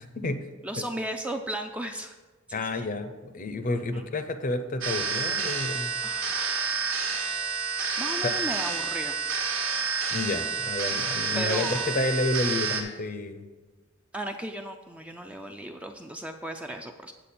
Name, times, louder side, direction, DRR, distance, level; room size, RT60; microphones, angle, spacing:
voice 1, 0.0-0.4 2.5-5.9 8.2-8.3 10.1-13.5, left 2 dB, 40° left, 9 dB, 0.6 m, -30 dB
voice 2, 0.6-2.2 2.5-2.9 3.9-4.1 6.0-6.9 8.0-9.2 11.4-12.0 14.1-17.1, right 1 dB, 5° right, 5 dB, 0.3 m, -36 dB
sound 1, 4.8-12.8, right 5 dB, 75° right, 1.2 m, -29 dB
8.2 x 7.7 x 4.2 m, 1.3 s
head